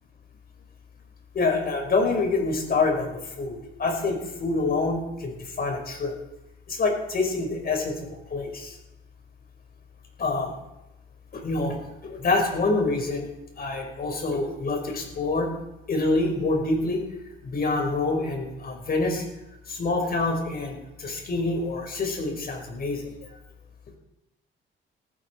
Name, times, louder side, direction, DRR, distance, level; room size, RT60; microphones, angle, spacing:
voice 1, 1.3-6.1 6.7-8.8 10.2-10.5 11.3-13.3 13.6-15.5 15.9-17.0 17.4-19.2 19.7-23.1, left 3 dB, 50° left, 3 dB, 5.8 m, -26 dB
19.5 x 14.5 x 4.8 m, 0.93 s
cardioid pair, 90°, 20 cm